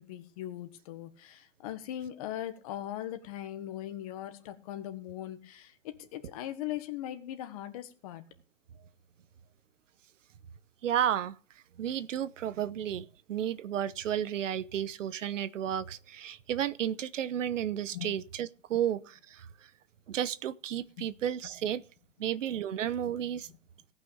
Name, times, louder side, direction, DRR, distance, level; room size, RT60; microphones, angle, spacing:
voice 1, 0.0-8.2 17.9-18.1 21.0-21.1 21.6-21.7, left 12 dB, 30° left, 1.5 m, -40 dB
voice 2, 10.8-11.4 11.8-19.5 20.1-21.8 22.2-23.5, right 10 dB, 85° right, 1.0 m, -32 dB
17.5 x 6.1 x 7.0 m
hypercardioid pair, 175°, 37 cm